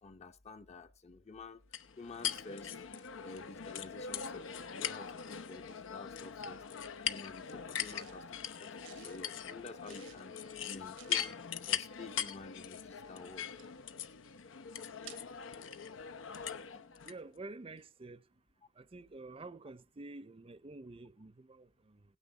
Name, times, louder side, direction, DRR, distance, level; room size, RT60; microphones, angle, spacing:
voice 1, 0.0-2.7 3.0-6.6 7.0-8.2 8.6-10.3 10.7-11.4 11.7-13.5, left 3 dB, 35° left, 0.7 m, -50 dB
sound 1, 1.7-17.2, left 8 dB, 90° left, 0.8 m, -41 dB
sound 2, 7.8-8.2 8.8-9.2 9.8-10.3 10.9-11.3 13.5-13.7 15.0-15.3, right 11 dB, 75° right, 0.9 m, -54 dB
voice 2, 17.0-18.2 18.8-22.0, right 2 dB, 30° right, 0.6 m, -49 dB
17.5 x 9.6 x 4.0 m
head